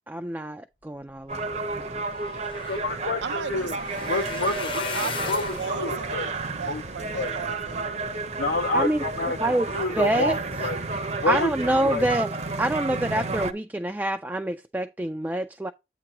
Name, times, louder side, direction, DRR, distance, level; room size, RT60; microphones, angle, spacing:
voice 1, 0.1-1.4 1.7-2.0 8.7-9.0 9.4-9.7 10.0-10.3 11.3-15.7, right 1 dB, 10° right, 0.3 m, -26 dB
sound 1, 1.3-13.5, right 3 dB, 40° right, 0.7 m, -31 dB
sound 2, 1.7-8.1 8.6-9.1 9.5-9.7 10.0-10.1, left 4 dB, 30° left, 0.7 m, -38 dB
voice 2, 2.7-3.7 4.0-5.0 5.3-6.3 6.7-6.8 7.1-7.3 8.4-10.8 11.2-12.1, left 2 dB, 85° left, 0.8 m, -28 dB
voice 3, 3.2-4.3 4.9-8.0, right 5 dB, 85° right, 0.6 m, -36 dB
8.5 x 2.9 x 5.8 m
head